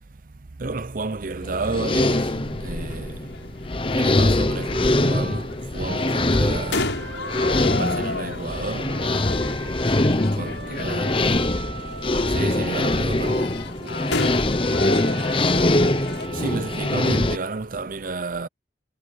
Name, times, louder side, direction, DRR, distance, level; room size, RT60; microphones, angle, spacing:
voice 1, 0.6-3.4 3.9-7.0 7.7-9.0 10.3-11.1 12.2-13.6 16.3-18.5, right 3 dB, 45° right, 0.7 m, -31 dB
sound 1, 1.4-17.4, left 2 dB, 30° left, 0.9 m, -23 dB
sound 2, 1.6-16.3, left 3 dB, 80° left, 6.2 m, -34 dB
sound 3, 4.5-8.5 8.9-17.5, right 3 dB, 75° right, 2.0 m, -40 dB
voice 2, 10.0-11.1 13.9-15.5, left 3 dB, 55° left, 4.4 m, -39 dB
head